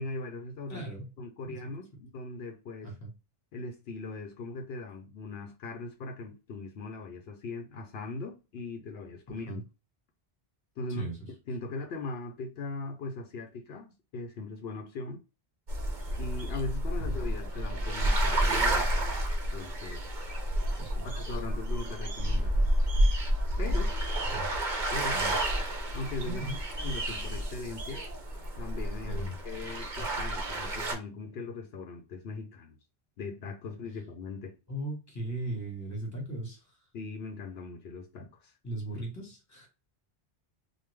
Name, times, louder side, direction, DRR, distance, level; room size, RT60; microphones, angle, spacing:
voice 1, 0.0-0.8 1.2-3.0 3.5-9.6 10.8-11.1 11.5-15.2 16.2-19.2 19.5-20.0 21.0-22.6 23.6-24.0 24.9-25.2 25.9-26.4 26.8-28.0 28.6-32.8 33.2-34.6 36.9-38.5, left 3 dB, 75° left, 0.9 m, -39 dB
voice 2, 0.7-1.1 1.4-1.6 2.8-3.1 9.5-9.6 10.9-11.3 17.0-17.2 20.8-21.1 24.3-24.4 25.1-25.4 26.2-26.6 29.0-29.3 34.7-36.8 38.6-39.7, right 1 dB, 15° left, 1.2 m, -38 dB
sound 1, 15.7-30.9, right 1 dB, 50° right, 0.9 m, -30 dB
3.2 x 2.2 x 3.2 m
omnidirectional pair, 1.0 m